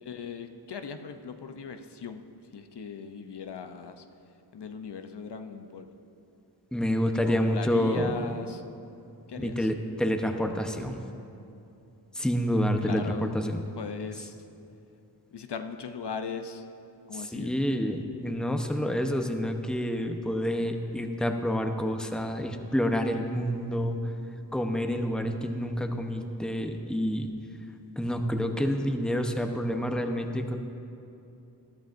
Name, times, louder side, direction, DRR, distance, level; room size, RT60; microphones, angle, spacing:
voice 1, 0.0-2.2 2.5-4.0 4.5-5.9 7.1-8.6 9.3-9.7 12.8-13.3 13.8-14.4 15.3-16.6 17.1-17.5, left 6 dB, 75° left, 7 dB, 0.7 m, -38 dB
voice 2, 6.7-8.1 9.4-11.0 12.1-13.6 17.1-24.0 24.5-27.3 28.0-30.6, equal, ahead, 4 dB, 0.8 m, -28 dB
20.0 x 13.0 x 2.6 m, 2.7 s
wide cardioid pair, 80°, 41 cm